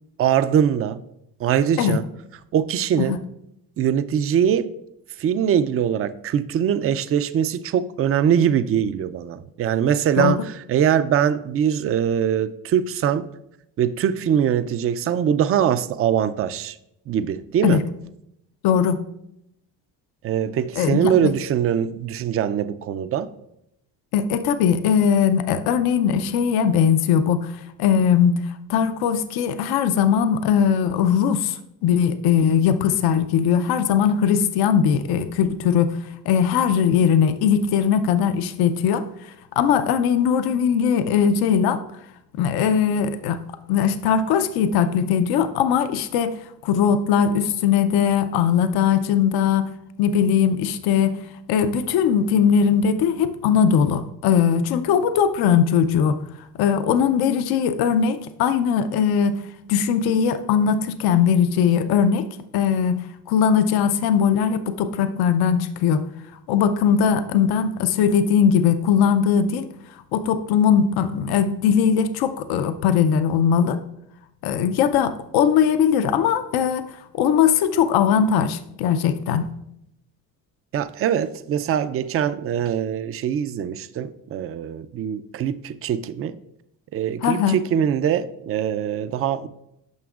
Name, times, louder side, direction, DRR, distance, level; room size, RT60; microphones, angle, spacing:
voice 1, 0.2-1.0 1.4-2.0 2.5-3.1 3.8-4.7 5.2-13.3 13.8-16.8 17.1-17.8 20.2-23.3 80.7-86.4 86.9-89.5, right 9 dB, 35° right, 12 dB, 0.4 m, -22 dB
voice 2, 18.6-19.0 20.8-21.3 24.1-36.0 36.3-39.0 39.6-41.8 42.3-43.4 43.7-46.3 46.6-49.7 50.0-51.2 51.5-56.2 56.6-59.4 59.7-62.3 62.5-66.0 66.5-69.7 70.1-73.8 74.4-79.4 87.2-87.6, left 7 dB, 70° left, 10 dB, 0.6 m, -20 dB
9.4 x 6.0 x 2.4 m, 0.80 s
supercardioid pair, 90°, 39 cm